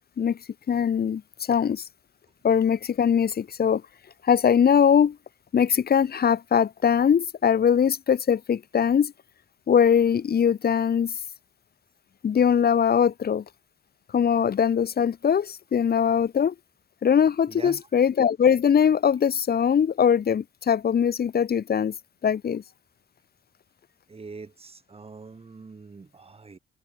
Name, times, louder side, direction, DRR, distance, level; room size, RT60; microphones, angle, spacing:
voice 1, 0.7-1.2 1.5-1.8 2.4-3.8 4.2-5.2 5.5-9.1 9.7-11.1 12.2-13.4 14.1-16.5 17.0-21.9 22.2-22.6, left 7 dB, 50° left, 3.4 m, -21 dB
voice 2, 17.5-17.8 24.1-26.6, right 4 dB, 30° right, 6.5 m, -43 dB
cardioid pair, 90°, 20 cm